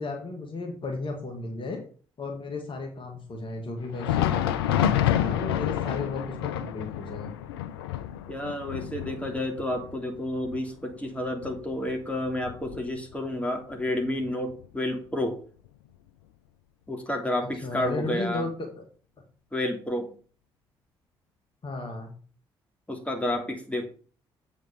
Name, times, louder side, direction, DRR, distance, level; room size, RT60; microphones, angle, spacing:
voice 1, 0.0-1.8 2.2-7.3 17.6-18.5 21.6-22.1, left 3 dB, 40° left, 3 dB, 2.1 m, -34 dB
Thunder, 3.8-13.3 13.6-13.8 14.5-14.7 15.7-15.8, left 11 dB, 80° left, 0.4 m, -29 dB
voice 2, 8.3-15.4 16.9-18.5 19.5-20.1 22.9-23.9, left 1 dB, 10° left, 3 dB, 2.9 m, -30 dB
8.0 x 5.1 x 6.7 m, 0.41 s
figure-of-eight pair, 40°, 13 cm